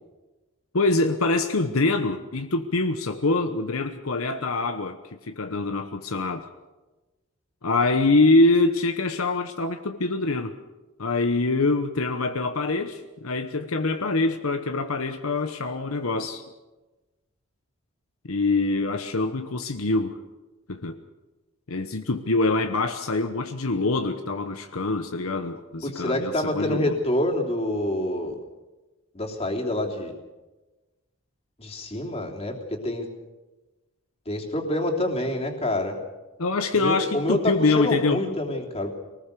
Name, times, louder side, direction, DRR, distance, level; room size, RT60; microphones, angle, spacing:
voice 1, 0.7-5.0 5.2-6.4 7.6-10.5 11.0-16.4 18.2-20.2 20.7-21.0 21.7-27.0 36.4-38.2, left 3 dB, 70° left, 7 dB, 1.1 m, -24 dB
voice 2, 25.8-28.4 29.1-30.1 31.6-33.1 34.2-36.0 36.7-38.9, left 1 dB, 30° left, 0 dB, 3.2 m, -27 dB
23.5 x 19.5 x 6.8 m, 1.1 s
head